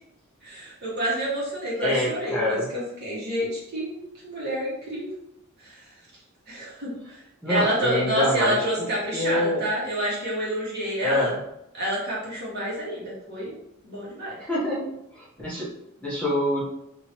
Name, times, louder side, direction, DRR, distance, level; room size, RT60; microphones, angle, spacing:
voice 1, 0.4-4.0 4.2-5.1 5.6-5.8 6.5-7.2 7.4-11.3 11.7-13.5 13.8-14.4, right 1 dB, 50° right, -6 dB, 1.4 m, -28 dB
voice 2, 1.8-2.7 7.4-8.7 9.1-9.6 11.0-11.4 14.4-15.7 16.0-16.6, left 1 dB, 5° left, -9 dB, 1.0 m, -26 dB
3.1 x 2.9 x 2.9 m, 0.80 s
head